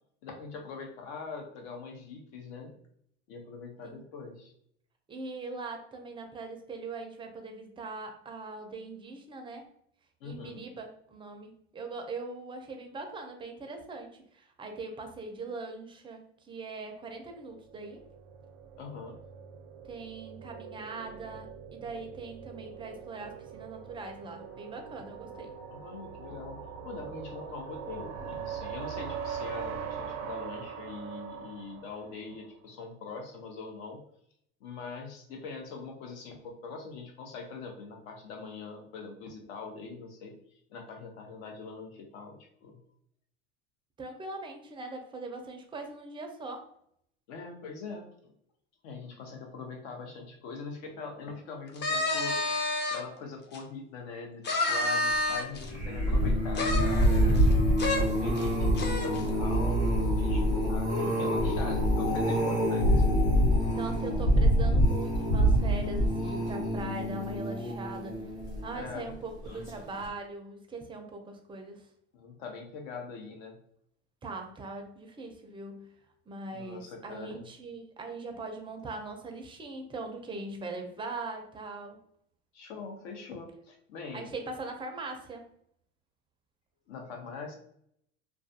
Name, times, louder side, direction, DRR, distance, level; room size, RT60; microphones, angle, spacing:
voice 1, 0.2-2.7 3.3-4.5 10.2-10.6 18.8-19.2 25.7-34.0 34.6-40.4 40.7-42.8 47.3-48.3 48.8-52.4 52.9-57.4 57.9-63.0 68.7-69.1 72.1-73.6 76.5-77.5 82.5-84.3 86.9-87.5, left 4 dB, 70° left, 3 dB, 0.8 m, -42 dB
voice 2, 5.1-9.7 10.2-18.0 19.8-25.5 44.0-46.7 62.9-63.4 63.7-68.2 68.6-71.9 74.2-75.9 76.3-82.0 84.1-85.5, right 3 dB, 15° right, 4 dB, 0.4 m, -41 dB
sound 1, 17.3-32.6, right 7 dB, 80° right, 0.5 m, -42 dB
sound 2, 51.8-53.0 53.5-53.6 54.4-55.7 56.5-57.5 57.8-58.0 58.4-58.5 58.8-59.2, left 2 dB, 30° left, 0.6 m, -29 dB
sound 3, 55.6-68.9 69.5-69.8 70.0-70.1, equal, 85° left, 1.4 m, -26 dB
2.4 x 2.3 x 2.6 m, 0.69 s
supercardioid pair, 100°, 33 cm